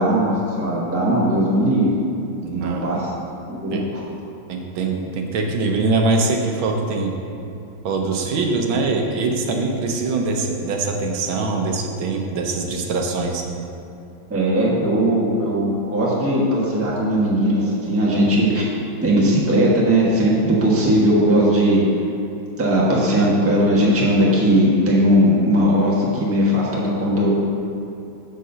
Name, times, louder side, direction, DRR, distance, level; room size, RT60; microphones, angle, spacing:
voice 1, 0.0-1.9 2.5-4.0 14.3-18.7 19.0-21.8 22.6-27.5, equal, 10° right, -5 dB, 0.9 m, -18 dB
voice 2, 2.4-2.9 3.7-3.8 4.5-7.1 7.8-13.4, right 3 dB, 85° right, 2 dB, 1.6 m, -23 dB
6.5 x 5.3 x 6.7 m, 2.8 s
omnidirectional pair, 2.2 m